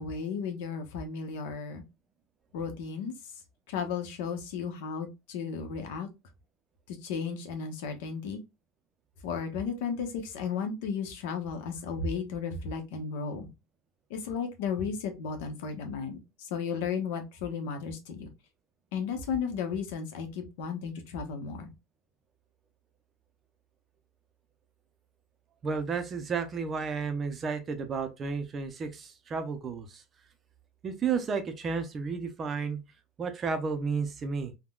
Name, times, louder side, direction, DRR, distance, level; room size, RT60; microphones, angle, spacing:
voice 1, 0.0-1.8 2.5-3.1 3.7-6.1 6.9-8.4 9.2-13.5 14.1-18.3 18.9-21.7, left 6 dB, 80° left, 0.8 m, -34 dB
voice 2, 25.6-30.0 30.8-32.8 33.2-34.5, right 5 dB, 25° right, 0.5 m, -32 dB
3.6 x 2.2 x 2.3 m
cardioid pair, 155°, 0 cm